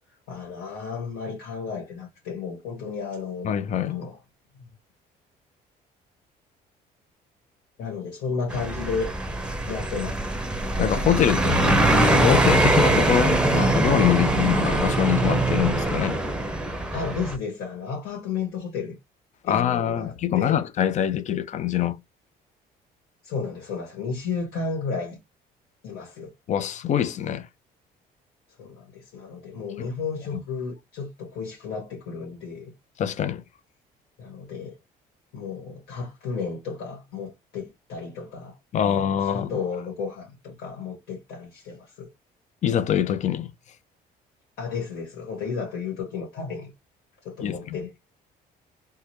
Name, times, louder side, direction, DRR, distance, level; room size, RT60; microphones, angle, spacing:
voice 1, 0.3-3.5 3.9-4.2 7.8-9.1 9.7-10.2 11.4-11.9 14.1-14.4 16.9-18.9 19.5-20.6 23.2-25.2 25.8-26.3 28.6-32.7 34.2-34.8 35.3-38.5 38.8-42.1 44.6-46.7 47.2-48.0, left 5 dB, 75° left, 1.6 m, -33 dB
voice 2, 3.4-4.0 10.8-11.4 11.9-16.2 19.4-22.0 26.5-27.5 33.0-33.4 38.7-39.5 42.6-43.5 47.4-47.6, left 10 dB, 45° left, 0.5 m, -24 dB
sound 1, 8.5-17.4, right 2 dB, 5° right, 0.7 m, -22 dB
3.7 x 2.1 x 3.0 m
cardioid pair, 110°, 17 cm